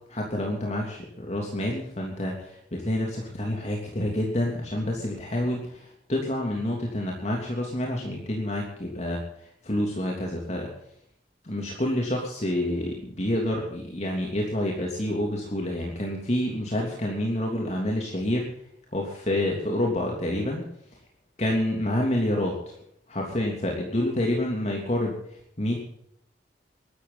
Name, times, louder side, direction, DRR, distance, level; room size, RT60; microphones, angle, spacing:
voice 1, 0.1-10.7 11.4-18.5 18.9-20.6 21.4-22.7 23.1-25.9, left 1 dB, 40° left, -1 dB, 3.1 m, -28 dB
22.0 x 13.0 x 4.2 m, 0.71 s
head